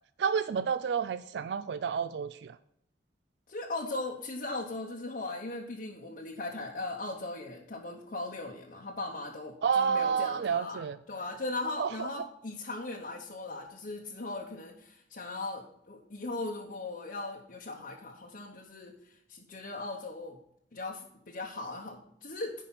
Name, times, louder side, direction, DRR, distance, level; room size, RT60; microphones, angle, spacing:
voice 1, 0.2-2.5 9.6-11.0 11.8-11.9, right 6 dB, 70° right, 14 dB, 0.3 m, -29 dB
voice 2, 3.5-20.4 20.7-22.5, left 2 dB, 55° left, -2 dB, 1.0 m, -38 dB
10.0 x 5.0 x 5.7 m, 0.75 s
head